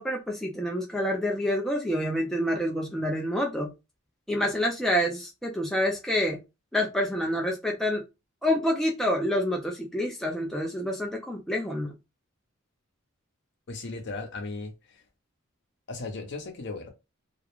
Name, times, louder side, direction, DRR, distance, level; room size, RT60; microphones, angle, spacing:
voice 1, 0.0-3.7 4.3-6.4 6.7-8.0 8.4-11.9, equal, ahead, 0.3 m, -27 dB
voice 2, 13.7-14.7 15.9-16.9, left 3 dB, 55° left, 0.7 m, -36 dB
2.3 x 2.0 x 2.9 m
head